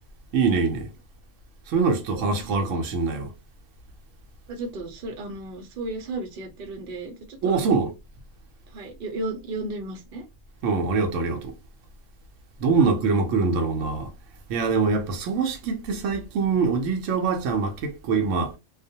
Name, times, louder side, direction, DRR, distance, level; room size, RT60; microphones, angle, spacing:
voice 1, 0.3-0.9 1.7-3.3 7.4-7.9 10.6-11.5 12.6-14.1 14.5-18.5, right 4 dB, 80° right, 0.9 m, -24 dB
voice 2, 2.1-2.7 4.5-7.8 8.7-10.2, right 2 dB, 55° right, 0.7 m, -34 dB
2.3 x 2.1 x 2.6 m
omnidirectional pair, 1.3 m